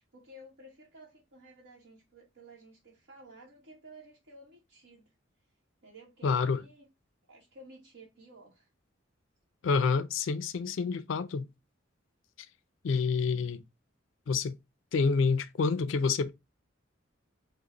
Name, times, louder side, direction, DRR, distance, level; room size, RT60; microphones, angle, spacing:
voice 1, 0.0-5.1 5.8-6.9 7.3-8.7, right 1 dB, 90° right, 1.1 m, -53 dB
voice 2, 6.2-6.6 9.6-11.5 12.8-13.6 14.3-14.6 14.9-16.3, left 5 dB, 70° left, 0.4 m, -28 dB
4.7 x 2.1 x 3.7 m
head